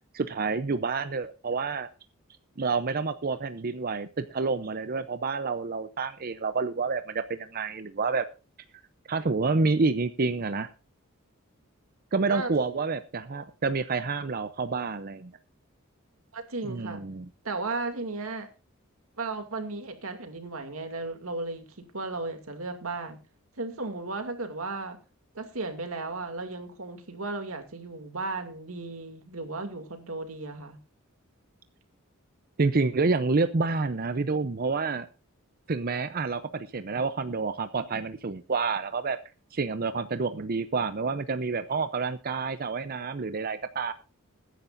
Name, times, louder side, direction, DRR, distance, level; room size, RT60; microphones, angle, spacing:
voice 1, 0.1-1.9 2.6-8.3 9.1-10.7 12.1-15.3 16.7-17.3 32.6-35.1 35.7-39.2 39.5-43.9, right 4 dB, 45° right, 11 dB, 0.6 m, -28 dB
voice 2, 16.3-17.0 17.4-18.5 19.2-23.2 23.6-25.0 25.3-30.8, right 3 dB, 90° right, 6 dB, 2.5 m, -35 dB
21.0 x 10.0 x 2.6 m, 0.31 s
head